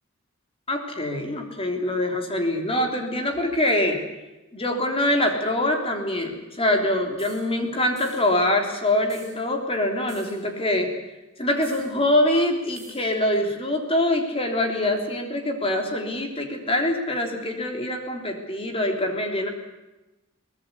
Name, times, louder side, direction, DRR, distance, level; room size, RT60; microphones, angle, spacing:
voice 1, 0.7-4.0 4.5-10.9 11.4-19.5, left 1 dB, 30° left, 3 dB, 3.5 m, -24 dB
sound 1, 7.2-7.5 8.0-8.3 9.1-9.4 10.1-10.5 11.6-11.9 12.7-13.1, right 4 dB, 15° right, 7.4 m, -47 dB
23.5 x 19.0 x 8.4 m, 1.0 s
head